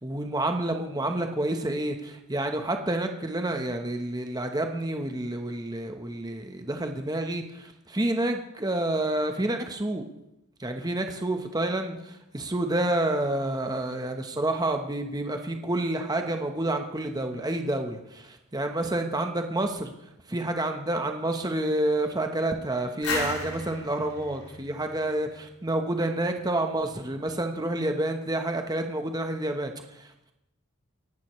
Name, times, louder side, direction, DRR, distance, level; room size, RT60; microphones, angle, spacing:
voice 1, 0.0-10.1 10.6-19.9 20.3-30.1, right 1 dB, 15° right, 5 dB, 1.1 m, -29 dB
sound 1, 23.0-25.7, left 3 dB, 75° left, 5.0 m, -35 dB
25.0 x 11.5 x 3.2 m, 0.88 s
head